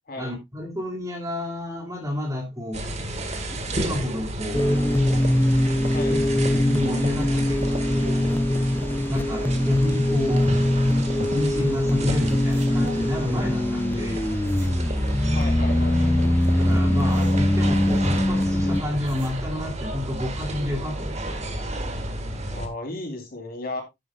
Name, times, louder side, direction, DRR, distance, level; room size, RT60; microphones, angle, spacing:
voice 1, 0.2-2.8 3.5-5.3 6.1-8.5 9.1-10.5 11.2-14.3 16.5-21.4, left 1 dB, 15° right, 2.5 m, -30 dB
sound 1, 2.7-22.7, right 1 dB, 35° right, 1.8 m, -31 dB
sound 2, 4.5-18.8, left 1 dB, 10° left, 0.4 m, -22 dB
sound 3, 12.2-13.2 14.2-15.8 16.4-17.9 18.7-19.8, right 1 dB, 70° right, 5.7 m, -48 dB
voice 2, 15.3-16.4 22.5-23.8, left 2 dB, 50° left, 3.7 m, -35 dB
11.0 x 9.9 x 2.4 m
head